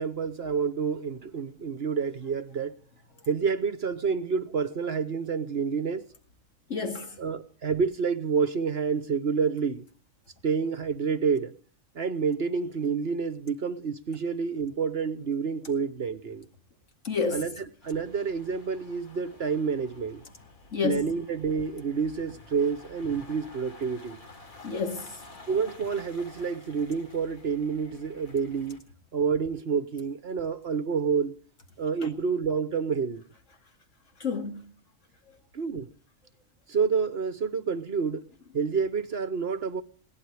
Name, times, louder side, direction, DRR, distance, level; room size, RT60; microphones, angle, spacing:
voice 1, 0.0-2.7 3.3-6.1 7.2-9.8 10.4-11.5 11.9-16.5 17.3-17.5 17.8-20.2 20.8-24.2 25.5-28.8 29.1-31.4 31.8-33.2 35.5-35.9 36.7-38.3 38.5-39.8, right 5 dB, 50° right, 1.1 m, -28 dB
voice 2, 6.7-7.2 17.0-17.5 20.7-21.1 24.6-25.2 32.0-32.1 34.2-34.7, left 5 dB, 60° left, 2.5 m, -30 dB
sound 1, 17.8-28.8, left 3 dB, 85° left, 3.2 m, -51 dB
21.5 x 18.0 x 3.3 m
omnidirectional pair, 1.4 m